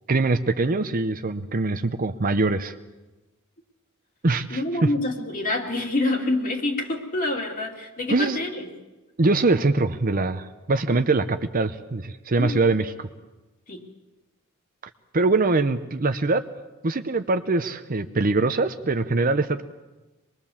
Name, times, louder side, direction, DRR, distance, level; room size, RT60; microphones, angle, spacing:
voice 1, 0.1-2.7 4.2-4.6 8.1-8.4 9.2-13.1 15.1-16.4 16.8-19.6, right 3 dB, 40° right, 9 dB, 0.8 m, -23 dB
voice 2, 4.5-8.7 12.4-12.6 13.7-13.8, left 2 dB, 40° left, 1 dB, 2.7 m, -27 dB
24.5 x 21.5 x 7.2 m, 1.1 s
head